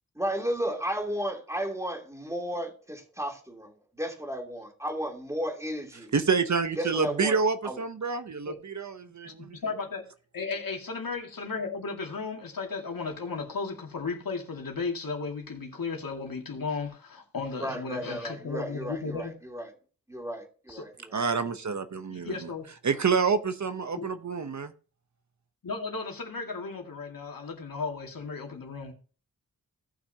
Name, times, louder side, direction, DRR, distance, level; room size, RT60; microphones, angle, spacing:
voice 1, 0.2-6.1 6.8-7.4 7.6-7.8 17.6-19.7 20.1-21.2, equal, 10° right, 2.8 m, -34 dB
voice 2, 6.1-9.6 21.1-22.5 22.8-24.7, right 5 dB, 55° right, 0.9 m, -28 dB
voice 3, 9.2-10.1 10.3-19.3 20.7-20.9 22.1-22.6 23.9-24.1 25.6-28.9, left 4 dB, 70° left, 2.3 m, -35 dB
18.0 x 6.0 x 2.8 m
wide cardioid pair, 110°, 35 cm